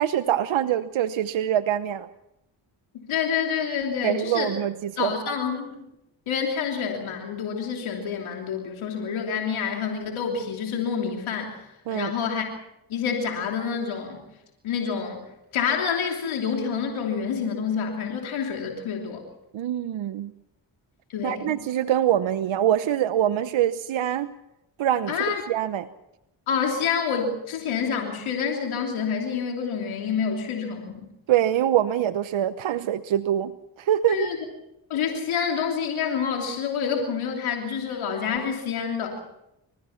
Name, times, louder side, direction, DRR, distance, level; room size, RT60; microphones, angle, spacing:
voice 1, 0.0-2.1 4.0-5.2 11.9-12.1 19.5-20.3 21.2-24.3 24.8-25.9 31.3-33.5 33.8-34.3, right 11 dB, 75° right, 12 dB, 1.0 m, -24 dB
voice 2, 3.0-4.5 5.0-5.8 6.3-12.4 12.9-14.2 14.6-15.2 15.5-19.2 21.1-21.6 25.1-25.4 26.5-31.1 34.1-34.4 34.9-39.2, left 6 dB, 85° left, 1 dB, 3.2 m, -28 dB
29.5 x 15.0 x 5.9 m, 0.87 s
supercardioid pair, 50°, 47 cm